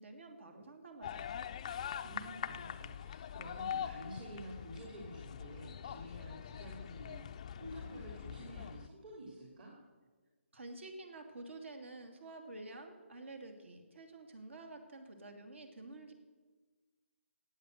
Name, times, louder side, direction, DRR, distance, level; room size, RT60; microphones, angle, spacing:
voice 1, 0.0-1.4 10.5-16.1, right 2 dB, 65° right, 6 dB, 2.7 m, -50 dB
sound 1, 1.0-8.9, left 9 dB, 30° left, 0.4 m, -43 dB
voice 2, 2.0-7.2 7.6-9.7, right 1 dB, 45° right, -2 dB, 2.7 m, -49 dB
16.5 x 8.6 x 6.5 m, 1.4 s
hypercardioid pair, 160°, 7 cm